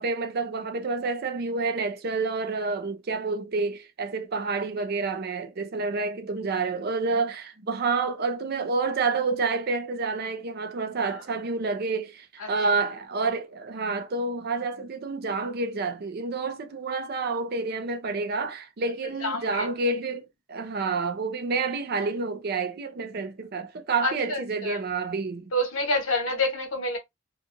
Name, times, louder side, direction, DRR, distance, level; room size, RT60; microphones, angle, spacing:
voice 1, 0.0-25.5, right 4 dB, 45° right, 0.5 m, -29 dB
voice 2, 19.2-19.7 24.0-24.8 25.5-27.0, left 1 dB, 75° left, 1.1 m, -27 dB
2.5 x 2.4 x 2.6 m
head